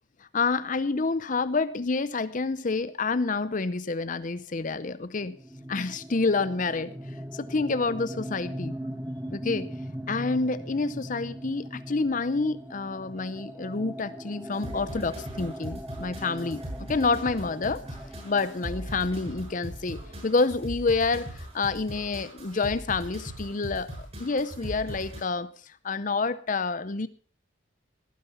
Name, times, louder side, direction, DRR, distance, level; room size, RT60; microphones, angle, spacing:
voice 1, 0.3-5.4 5.7-6.9 7.3-8.7 9.3-9.7 10.1-17.8 18.2-27.1, left 3 dB, 40° left, 15 dB, 0.6 m, -28 dB
sound 1, 5.2-20.7, equal, 10° right, 1.0 m, -40 dB
sound 2, 14.5-25.2, right 1 dB, 35° right, 6.6 m, -40 dB
17.5 x 9.5 x 5.5 m, 0.41 s
head